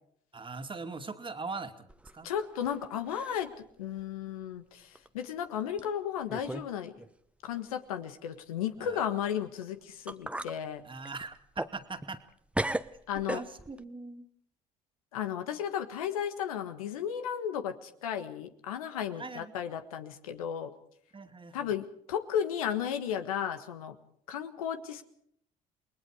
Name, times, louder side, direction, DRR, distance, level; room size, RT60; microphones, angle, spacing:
voice 1, 0.3-2.3 8.8-9.0 10.8-12.2 13.3-14.3 19.2-19.5 21.1-21.7, right 4 dB, 30° right, 7 dB, 2.3 m, -41 dB
sound 1, 1.9-2.8 3.1-3.5 4.0-4.1 4.9-5.1 5.8-5.9 6.3-6.7 7.0-7.1 9.6-9.7 10.1-10.6 11.0-12.3 12.5-13.8, right 1 dB, 5° right, 0.9 m, -36 dB
voice 2, 2.2-3.5 3.8-6.9 7.4-10.8 13.1-13.4 15.1-20.7 21.5-23.9 24.3-25.0, left 9 dB, 90° left, 8 dB, 1.4 m, -34 dB
29.0 x 20.0 x 4.9 m, 0.70 s
hypercardioid pair, 60°, 18 cm